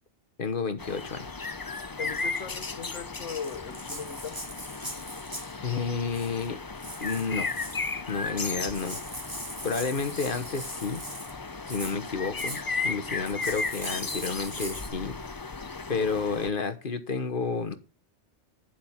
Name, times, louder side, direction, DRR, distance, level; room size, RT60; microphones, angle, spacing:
voice 1, 0.4-1.5 5.6-6.6 7.0-7.5 8.1-9.0 9.6-11.0 11.7-15.5 15.9-17.8, left 4 dB, 45° left, 1.3 m, -31 dB
sound 1, 0.8-16.5, left 4 dB, 25° left, 0.4 m, -35 dB
voice 2, 2.0-4.4, left 6 dB, 85° left, 1.4 m, -38 dB
Rattle (instrument), 3.3-5.6 6.1-6.5 6.8-7.9 8.4-8.5 8.7-11.3 11.7-12.0 12.4-12.6 13.2-14.9, right 1 dB, 20° right, 3.2 m, -40 dB
10.5 x 7.6 x 5.7 m
omnidirectional pair, 1.2 m